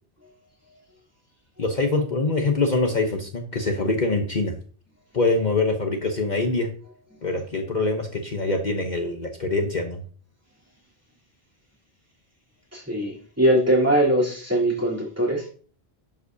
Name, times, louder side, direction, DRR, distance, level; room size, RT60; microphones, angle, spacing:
voice 1, 1.6-4.6 5.1-6.7 7.2-10.0, left 3 dB, 45° left, 2 dB, 1.1 m, -24 dB
voice 2, 12.7-15.5, right 1 dB, 15° right, -5 dB, 3.5 m, -21 dB
11.0 x 7.5 x 2.8 m, 0.42 s
omnidirectional pair, 1.1 m